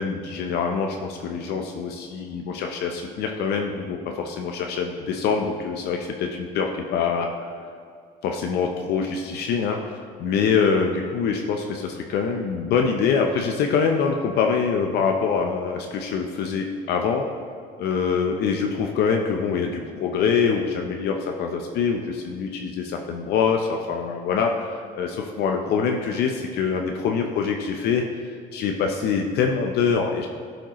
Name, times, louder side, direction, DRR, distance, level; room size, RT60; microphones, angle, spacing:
voice 1, 0.0-7.6 8.2-17.3 17.8-30.3, left 6 dB, 75° left, 3 dB, 0.6 m, -24 dB
11.5 x 5.0 x 3.0 m, 2.3 s
cardioid pair, 110°, 17 cm